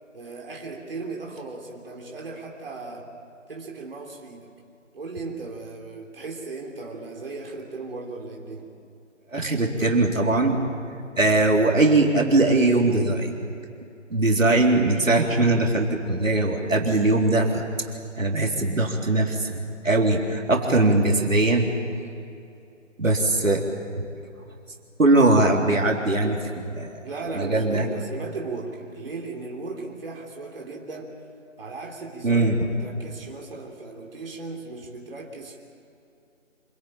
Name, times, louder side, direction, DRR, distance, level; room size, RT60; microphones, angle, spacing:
voice 1, 0.1-3.1 3.5-4.5 4.9-8.7 27.0-31.2 31.6-35.6, right 3 dB, 45° right, -1 dB, 3.3 m, -36 dB
voice 2, 9.3-10.6 11.2-13.3 14.1-17.6 18.2-21.7 23.0-23.6 24.0-24.1 25.0-26.9 27.4-27.9 32.2-32.6, right 2 dB, 80° right, 1 dB, 3.8 m, -21 dB
26.5 x 19.5 x 8.8 m, 2.6 s
figure-of-eight pair, 160°, 38 cm